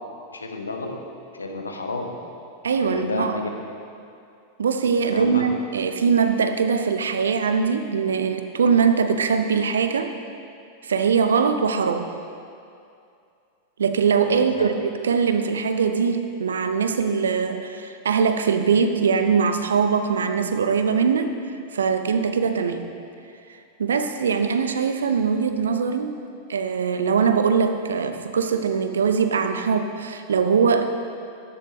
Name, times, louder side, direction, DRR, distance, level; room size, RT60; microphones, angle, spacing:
voice 1, 0.3-1.0 1.3-2.2 2.8-3.5 5.1-5.4 14.3-14.7, left 2 dB, 75° left, 4 dB, 1.1 m, -30 dB
voice 2, 2.6-3.4 4.6-10.1 10.8-12.1 13.8-21.3 21.7-22.9 23.8-26.2 26.5-30.9, right 6 dB, 70° right, 8 dB, 0.7 m, -22 dB
14.5 x 11.0 x 3.1 m, 2.5 s
figure-of-eight pair, 90°, 0 cm